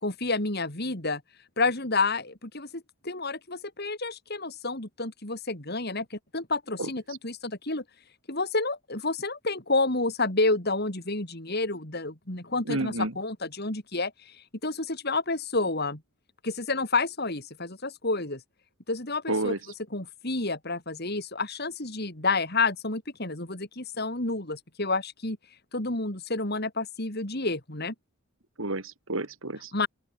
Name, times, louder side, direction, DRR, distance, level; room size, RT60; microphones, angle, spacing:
voice 1, 0.0-1.2 1.6-7.8 8.3-16.0 16.4-18.4 18.9-19.6 19.9-25.4 25.7-27.9 29.7-29.9, left 3 dB, 50° left, 4.0 m, -29 dB
voice 2, 12.7-13.1 19.3-19.6 28.6-29.9, right 2 dB, 75° right, 2.7 m, -30 dB
open air
head